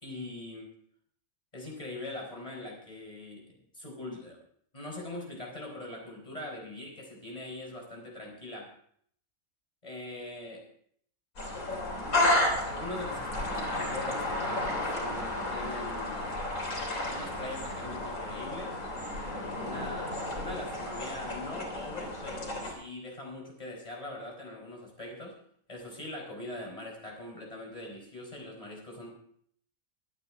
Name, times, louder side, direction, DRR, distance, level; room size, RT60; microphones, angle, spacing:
voice 1, 0.0-0.7 1.5-4.4 4.7-8.7 9.8-10.6 12.6-16.4 17.1-18.8 19.5-25.4 25.7-29.1, left 1 dB, 25° left, -1 dB, 4.4 m, -42 dB
sound 1, 11.4-22.7, left 1 dB, 85° left, 3.8 m, -32 dB
24.0 x 9.1 x 3.6 m, 0.63 s
omnidirectional pair, 1.5 m